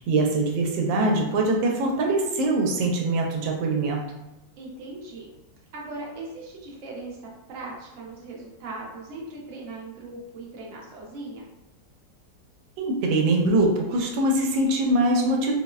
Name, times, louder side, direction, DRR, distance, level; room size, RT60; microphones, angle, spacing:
voice 1, 0.1-4.0 12.8-15.5, right 2 dB, 90° right, 1 dB, 1.3 m, -23 dB
voice 2, 4.6-5.3 5.7-11.5, right 2 dB, 60° right, -3 dB, 0.9 m, -39 dB
3.9 x 2.0 x 2.3 m, 0.92 s
omnidirectional pair, 2.0 m